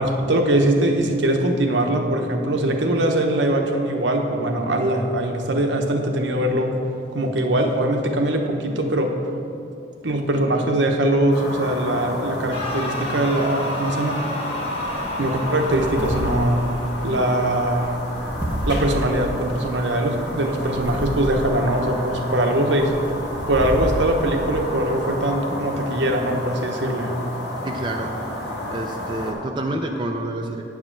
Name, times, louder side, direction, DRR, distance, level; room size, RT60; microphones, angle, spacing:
voice 1, 0.0-6.8 7.1-9.1 10.0-14.2 15.2-16.6 17.0-17.9 18.7-22.9 23.5-27.1, right 1 dB, 75° right, 3 dB, 0.9 m, -21 dB
sound 1, 11.3-29.3, left 1 dB, 65° left, 1.8 m, -31 dB
sound 2, 12.5-17.6 18.5-19.1, left 1 dB, 30° left, 1.1 m, -32 dB
sound 3, 14.6-25.1, equal, 10° right, 1.1 m, -31 dB
voice 2, 27.6-28.1 28.7-30.6, right 1 dB, 25° right, 2 dB, 0.5 m, -28 dB
9.2 x 4.8 x 7.3 m, 2.7 s
head